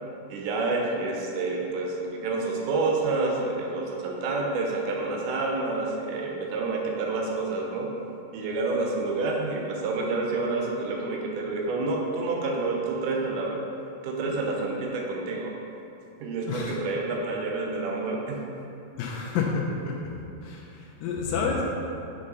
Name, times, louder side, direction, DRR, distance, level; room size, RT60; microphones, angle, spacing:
voice 1, 0.3-7.9 8.3-13.6 14.0-15.6 16.2-18.4, right 3 dB, 70° right, 0 dB, 2.2 m, -28 dB
voice 2, 19.0-20.1 20.4-21.6, left 5 dB, 80° left, -2 dB, 2.3 m, -29 dB
7.5 x 5.2 x 4.0 m, 2.7 s
omnidirectional pair, 4.1 m